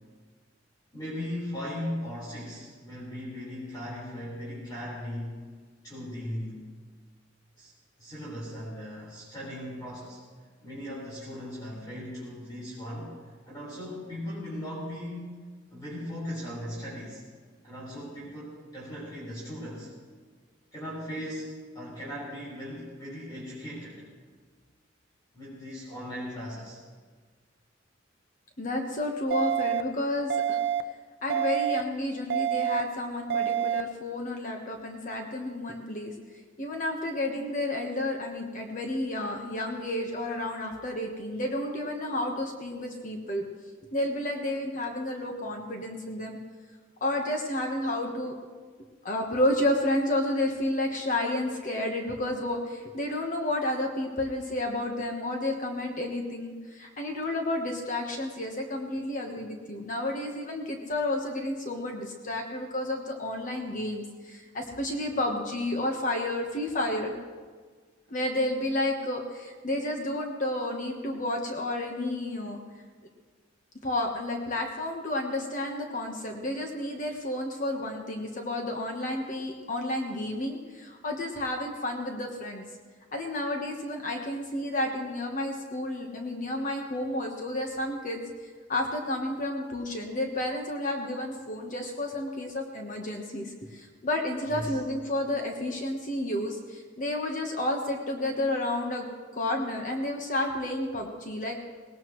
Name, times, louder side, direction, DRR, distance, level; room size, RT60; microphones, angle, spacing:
voice 1, 0.9-5.4 5.8-6.7 7.6-7.7 8.0-10.2 10.6-15.4 15.7-17.2 17.6-19.9 20.7-24.1 25.3-26.8 94.5-94.8, equal, 20° left, -8 dB, 4.4 m, -38 dB
voice 2, 28.6-30.6 31.2-36.1 36.6-43.4 43.9-46.4 47.0-48.3 49.0-67.1 68.1-72.6 73.8-82.6 83.1-99.1 99.3-101.6, left 1 dB, 45° left, 2 dB, 1.3 m, -31 dB
sound 1, 29.3-29.8 30.3-30.8 31.3-31.8 32.3-32.8 33.3-33.8, right 10 dB, 60° right, 0.6 m, -27 dB
19.5 x 18.5 x 3.2 m, 1.5 s
head